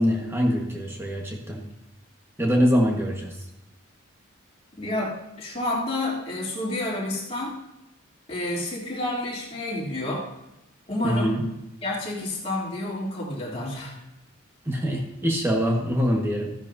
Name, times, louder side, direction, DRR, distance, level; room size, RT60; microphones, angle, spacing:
voice 1, 0.0-1.7 2.4-3.4 11.0-11.4 14.7-16.5, equal, 10° right, -1 dB, 1.7 m, -24 dB
voice 2, 4.8-7.6 8.3-10.3 10.9-11.3 11.8-14.0, left 1 dB, 30° left, -6 dB, 3.4 m, -29 dB
15.0 x 10.5 x 2.8 m, 0.93 s
head